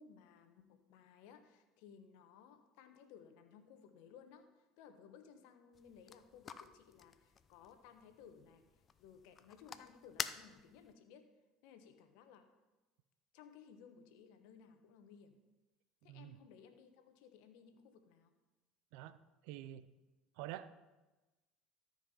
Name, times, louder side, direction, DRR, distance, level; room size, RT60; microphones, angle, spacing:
voice 1, 0.0-11.3 11.6-12.5 13.3-15.4 16.0-18.3, left 7 dB, 70° left, 8 dB, 1.1 m, -60 dB
sound 1, 5.7-10.9, left 7 dB, 40° left, 0.5 m, -49 dB
voice 2, 19.4-19.9 20.4-20.7, right 13 dB, 70° right, 14 dB, 0.5 m, -47 dB
13.0 x 5.4 x 5.6 m, 1.1 s
hypercardioid pair, 75°, 0 cm